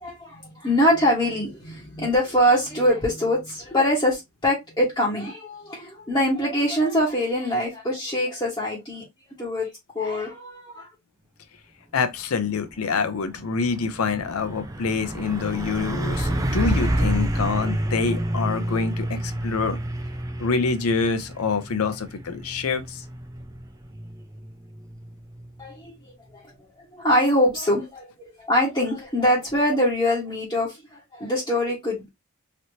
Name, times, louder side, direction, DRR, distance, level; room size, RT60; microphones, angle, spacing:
voice 1, 0.0-9.0 9.4-9.7 9.9-10.9 25.6-25.9 26.3-26.4 26.9-28.1 28.4-32.1, left 1 dB, 20° left, 1.1 m, -23 dB
voice 2, 11.9-19.8 20.4-23.0, left 5 dB, 85° left, 0.6 m, -26 dB
Truck, 12.6-12.8 13.2-25.7, right 1 dB, 15° right, 0.4 m, -29 dB
3.1 x 2.8 x 2.7 m
head